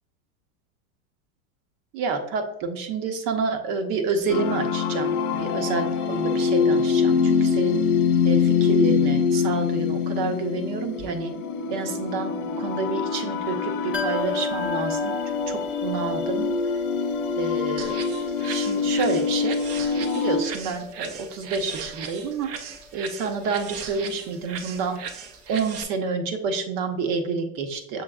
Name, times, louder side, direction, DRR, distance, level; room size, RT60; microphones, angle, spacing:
voice 1, 1.9-7.8 8.2-11.3 11.7-15.2 15.5-16.5 17.4-18.0 18.4-19.6 20.0-22.5 22.9-25.0 25.5-28.0, right 4 dB, 55° right, 6 dB, 0.9 m, -29 dB
sound 1, 4.3-20.4, left 6 dB, 80° left, 0.6 m, -24 dB
sound 2, 13.9-25.5 25.8-25.9, left 2 dB, 5° right, 0.7 m, -36 dB
sound 3, 17.8-25.8, right 6 dB, 35° right, 0.5 m, -38 dB
6.3 x 3.3 x 2.3 m, 0.78 s
hypercardioid pair, 110°, 43 cm